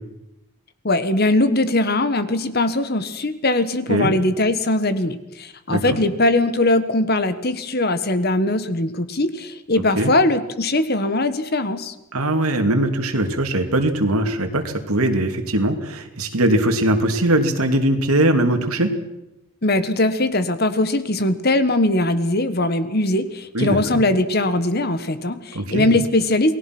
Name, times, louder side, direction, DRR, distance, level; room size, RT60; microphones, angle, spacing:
voice 1, 0.8-11.9 19.6-26.6, left 2 dB, 45° left, 11 dB, 1.5 m, -20 dB
voice 2, 5.7-6.0 9.8-10.1 12.1-18.9 23.5-24.0 25.5-25.9, right 1 dB, 80° right, 5 dB, 2.9 m, -20 dB
28.5 x 19.5 x 6.2 m, 0.91 s
head